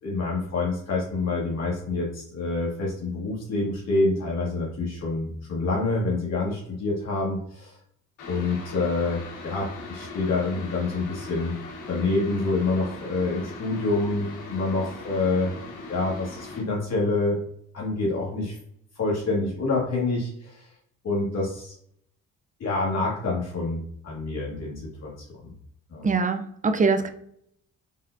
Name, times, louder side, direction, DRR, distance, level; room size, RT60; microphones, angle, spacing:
voice 1, 0.0-7.8 8.3-11.5 11.9-15.6 15.9-17.4 17.7-18.6 19.0-20.6 21.0-21.7 22.6-25.1 25.4-25.5 25.9-26.1, left 3 dB, 60° left, -4 dB, 1.9 m, -27 dB
sound 1, 8.2-16.6, left 3 dB, 85° left, 1.2 m, -40 dB
voice 2, 26.0-27.1, right 4 dB, 25° right, 8 dB, 0.6 m, -23 dB
5.5 x 3.7 x 2.6 m, 0.67 s
cardioid pair, 90°, 30 cm